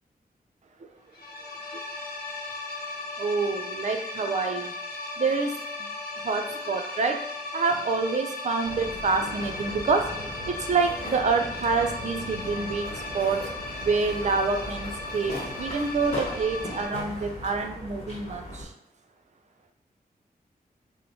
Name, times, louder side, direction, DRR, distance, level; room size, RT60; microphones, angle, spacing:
sound 1, 1.1-16.9, left 2 dB, 75° left, 0.7 m, -37 dB
voice 1, 3.2-4.7 5.2-5.6 6.2-10.1 10.5-13.4 13.8-18.7, right 4 dB, 45° right, 5 dB, 0.4 m, -27 dB
sound 2, 8.6-18.6, left 1 dB, 45° left, 1.1 m, -38 dB
3.0 x 2.1 x 4.0 m, 0.73 s
wide cardioid pair, 110°, 16 cm